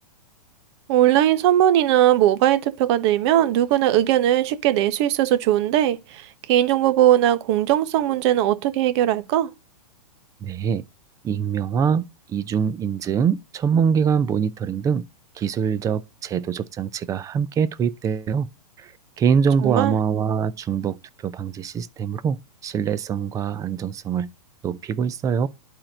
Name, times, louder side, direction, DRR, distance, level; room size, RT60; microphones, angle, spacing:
voice 1, 0.9-9.5 19.6-19.9, right 12 dB, 45° right, 1.3 m, -19 dB
voice 2, 10.4-10.8 11.2-15.1 15.4-18.5 18.8-18.9 19.2-21.0 21.2-24.3 24.6-25.5, right 7 dB, 15° right, 0.6 m, -24 dB
11.5 x 4.5 x 6.4 m
hypercardioid pair, 145°, 21 cm